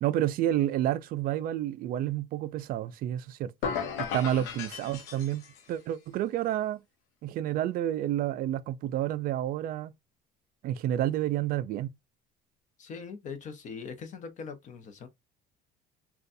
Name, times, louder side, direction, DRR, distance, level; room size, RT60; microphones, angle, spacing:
voice 1, 0.0-3.5 4.1-5.4 5.7-6.8 7.2-9.9 10.6-11.9, right 12 dB, 55° right, 0.4 m, -29 dB
sound 1, 3.6-5.7, left 7 dB, 80° left, 0.8 m, -35 dB
voice 2, 4.1-4.6 12.8-15.1, left 5 dB, 45° left, 0.7 m, -42 dB
3.9 x 2.3 x 2.6 m
cardioid pair, 130°, 18 cm